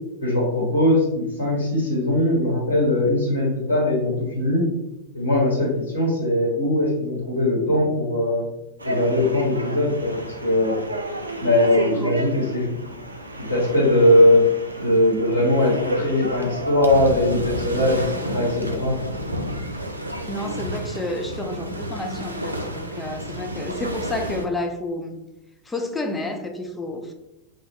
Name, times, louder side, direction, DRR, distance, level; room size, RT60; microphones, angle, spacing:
voice 1, 0.2-4.6 5.1-8.5 8.8-10.8 11.4-12.7 13.5-14.4 14.8-18.9, left 1 dB, 75° left, -4 dB, 1.0 m, -20 dB
sound 1, 8.8-24.5, right 1 dB, 80° right, 0.3 m, -31 dB
voice 2, 11.8-12.2 20.3-25.2 25.6-27.1, left 1 dB, 10° left, 3 dB, 0.4 m, -30 dB
2.2 x 2.2 x 3.2 m, 0.93 s
figure-of-eight pair, 90°, 0 cm